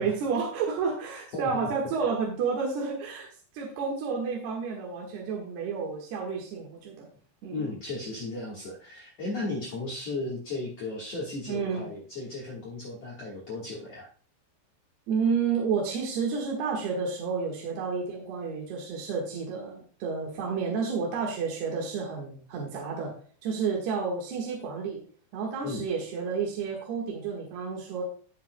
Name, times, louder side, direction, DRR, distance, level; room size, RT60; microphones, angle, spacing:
voice 1, 0.0-3.3 3.5-7.1 7.4-7.7 11.5-11.9 15.1-23.1 23.4-25.0 25.3-28.0, right 5 dB, 65° right, -2 dB, 3.2 m, -30 dB
voice 2, 1.3-1.7 7.5-14.1 25.6-25.9, left 2 dB, 90° left, -4 dB, 1.4 m, -35 dB
17.0 x 6.0 x 2.2 m, 0.43 s
omnidirectional pair, 5.7 m